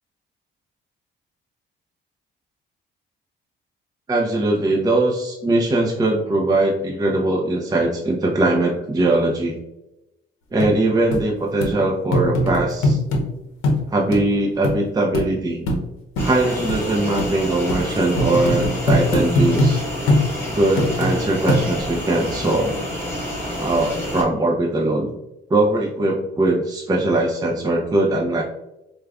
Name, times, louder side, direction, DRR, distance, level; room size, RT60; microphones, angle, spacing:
voice 1, 4.1-9.6 10.5-13.0 13.9-15.6 16.2-19.8 20.6-22.7 23.6-25.1 25.5-28.4, right 2 dB, 20° right, -1 dB, 0.5 m, -20 dB
sound 1, 10.6-10.7 11.1-11.2 11.6-11.7 12.1-13.2 13.6-13.8 14.1-14.2 14.6-14.8 15.1-15.3 15.7-15.8 16.2-16.3 16.7-16.8 17.2-17.3 17.7-17.8 18.2-19.7 20.1-20.3 20.8-21.1 21.5-21.9 22.5-22.6, left 1 dB, 90° left, 0.7 m, -20 dB
sound 2, 16.2-24.2, left 1 dB, 10° left, 1.5 m, -29 dB
4.7 x 2.2 x 2.3 m, 0.91 s
cardioid pair, 90°, 20 cm